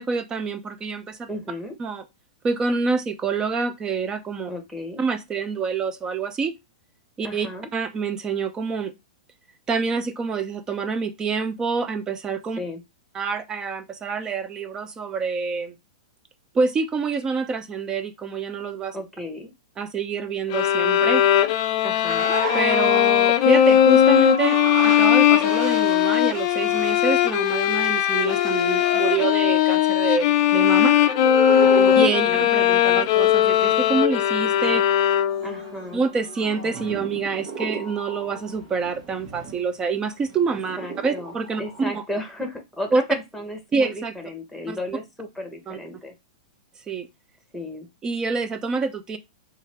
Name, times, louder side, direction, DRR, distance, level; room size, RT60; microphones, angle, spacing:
voice 1, 0.0-1.3 1.8-2.0 2.4-4.5 5.0-6.5 7.2-8.9 9.7-12.6 13.1-15.8 16.5-19.0 19.8-21.2 22.5-24.6 24.8-31.0 32.0-34.8 35.9-40.8 41.0-42.0 42.9-43.0 43.7-44.1 44.7-44.8 45.7-45.8 46.9-47.1 48.0-49.2, right 5 dB, 20° right, 0.5 m, -26 dB
voice 2, 1.3-1.7 4.5-5.0 7.2-7.7 12.6-12.8 18.9-19.5 21.8-22.4 31.8-33.4 35.4-36.0 40.8-41.3 41.6-46.1 47.5-47.9, left 1 dB, ahead, 1.0 m, -34 dB
sound 1, 20.5-35.6, left 11 dB, 50° left, 0.4 m, -19 dB
sound 2, 22.1-41.8, right 3 dB, 60° right, 1.2 m, -35 dB
3.0 x 2.4 x 4.3 m
hypercardioid pair, 120°, 3 cm